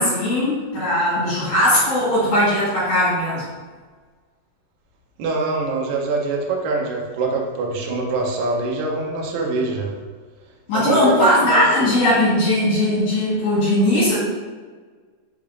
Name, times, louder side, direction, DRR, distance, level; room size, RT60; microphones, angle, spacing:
voice 1, 0.0-3.4 10.7-14.2, left 1 dB, 65° left, -10 dB, 3.1 m, -19 dB
voice 2, 5.2-9.9 10.7-11.9, right 3 dB, 75° right, -2 dB, 2.1 m, -24 dB
6.4 x 3.4 x 2.4 m, 1.5 s
omnidirectional pair, 4.8 m